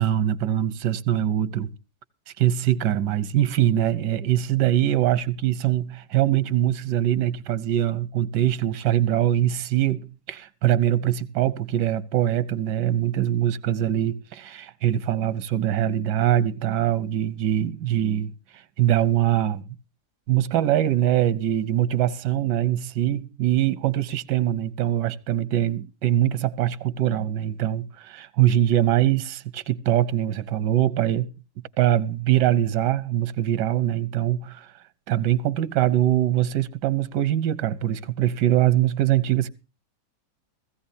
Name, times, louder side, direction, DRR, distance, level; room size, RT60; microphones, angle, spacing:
voice 1, 0.0-1.7 2.4-19.6 20.3-31.3 31.8-34.7 35.1-39.5, right 12 dB, 85° right, 1.4 m, -23 dB
16.0 x 16.0 x 2.7 m
omnidirectional pair, 1.8 m